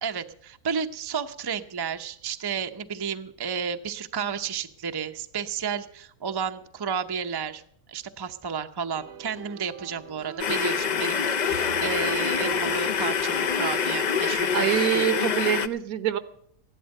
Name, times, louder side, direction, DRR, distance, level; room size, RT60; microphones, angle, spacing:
voice 1, 0.0-7.6 7.9-14.8, right 6 dB, 25° right, 8 dB, 0.5 m, -32 dB
sound 1, 9.0-14.2, right 7 dB, 55° right, 0.9 m, -43 dB
sound 2, 10.4-15.7, left 6 dB, 55° left, 0.4 m, -26 dB
voice 2, 14.5-16.2, right 10 dB, 75° right, 12 dB, 1.5 m, -25 dB
15.5 x 11.5 x 6.5 m, 0.69 s
omnidirectional pair, 1.6 m